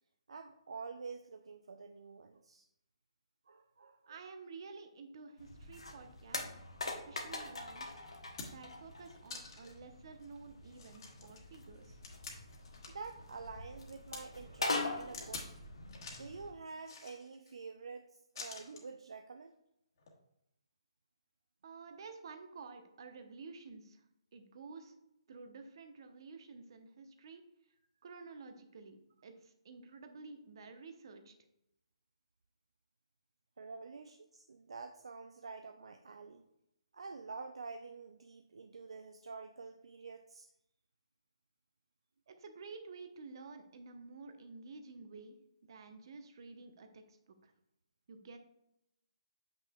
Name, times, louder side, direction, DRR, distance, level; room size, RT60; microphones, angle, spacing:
voice 1, 0.3-2.7 3.5-4.2 7.0-7.2 12.9-15.6 16.2-18.1 18.3-19.5 33.6-36.4 36.9-40.5, right 4 dB, 70° right, 6 dB, 0.4 m, -48 dB
voice 2, 4.1-6.4 6.8-7.9 8.5-12.0 21.6-24.0 24.3-24.9 25.3-27.4 28.0-29.0 29.2-31.3 42.3-45.3 45.7-47.5 48.1-48.4, right 4 dB, 55° right, 6 dB, 0.9 m, -51 dB
sound 1, 5.4-16.5, left 2 dB, 80° left, 1.2 m, -43 dB
sound 2, 7.6-7.7 8.1-8.8 9.3-9.8 10.2-10.3 10.7-13.1 13.4-14.2 15.1-15.5 15.9-16.3 16.8-17.5 18.4-18.9 20.0-20.1, left 4 dB, 50° left, 1.5 m, -48 dB
7.6 x 5.8 x 2.3 m, 0.82 s
figure-of-eight pair, 140°, 3 cm